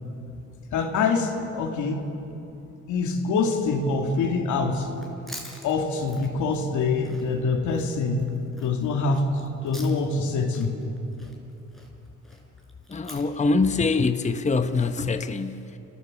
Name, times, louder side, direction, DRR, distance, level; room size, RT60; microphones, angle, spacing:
voice 1, 0.7-2.1 2.9-4.9 5.6-8.3 8.6-9.3 9.6-10.8, left 4 dB, 85° left, 3 dB, 2.5 m, -25 dB
Chewing mastication, 4.9-10.3 10.5-14.9, equal, ahead, 4.7 m, -47 dB
voice 2, 12.9-15.8, left 3 dB, 25° left, 9 dB, 0.9 m, -24 dB
28.5 x 15.0 x 7.2 m, 2.9 s
cardioid pair, 75°, 29 cm